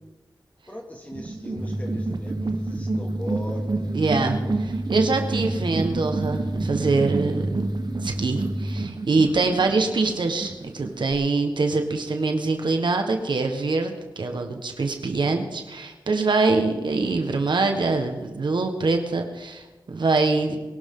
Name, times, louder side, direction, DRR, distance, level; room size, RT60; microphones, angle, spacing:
voice 1, 0.7-4.0, left 1 dB, 20° left, 0 dB, 2.4 m, -38 dB
sound 1, 1.1-11.1, right 3 dB, 65° right, 1.2 m, -30 dB
sound 2, 1.6-8.8, right 1 dB, 10° right, 1.4 m, -31 dB
voice 2, 3.9-7.6 8.0-20.6, right 3 dB, 85° right, 4 dB, 1.5 m, -24 dB
22.5 x 12.0 x 3.9 m, 1.2 s
wide cardioid pair, 65°, 8 cm